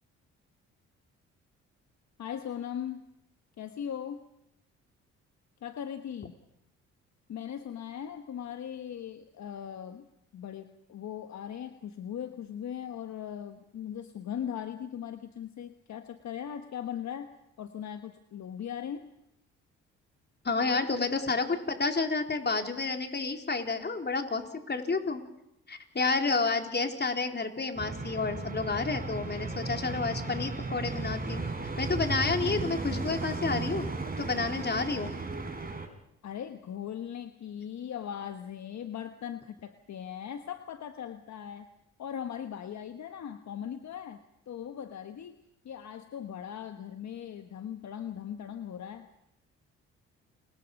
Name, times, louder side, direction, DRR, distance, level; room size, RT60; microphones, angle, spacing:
voice 1, 2.2-3.0 3.6-4.3 5.6-6.3 7.3-10.1 10.3-17.3 17.6-19.1 36.2-41.7 42.0-45.4 45.6-49.1, left 9 dB, 60° left, 8 dB, 1.4 m, -39 dB
voice 2, 20.4-25.2 25.7-31.5 31.8-33.9 34.2-35.1, left 4 dB, 30° left, 4 dB, 3.9 m, -30 dB
sound 1, 27.7-35.9, right 3 dB, 25° right, 5.4 m, -35 dB
30.0 x 21.5 x 5.4 m, 0.82 s
supercardioid pair, 55°, 32 cm